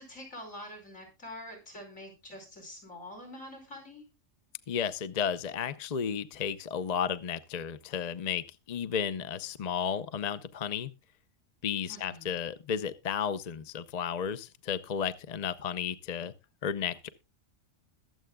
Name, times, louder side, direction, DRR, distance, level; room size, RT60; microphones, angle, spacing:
voice 1, 0.0-4.0 11.9-12.3, left 1 dB, 80° left, 5.4 m, -45 dB
voice 2, 4.7-10.9 11.6-16.3 16.6-17.1, left 7 dB, 40° left, 0.6 m, -33 dB
22.0 x 7.8 x 2.2 m
omnidirectional pair, 1.3 m